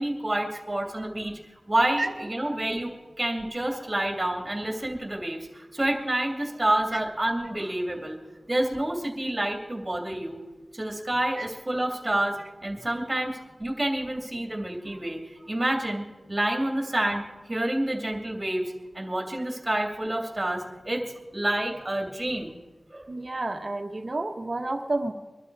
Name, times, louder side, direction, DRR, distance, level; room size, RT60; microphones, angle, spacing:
voice 1, 0.0-1.4 1.7-8.2 8.5-10.4 10.7-15.2 15.5-17.2 17.5-21.0 21.3-22.6 22.9-23.0, right 1 dB, 25° right, 2 dB, 2.7 m, -28 dB
voice 2, 23.1-25.1, right 2 dB, 45° right, 4 dB, 1.4 m, -30 dB
23.0 x 12.0 x 4.8 m, 1.2 s
wide cardioid pair, 70°, 0 cm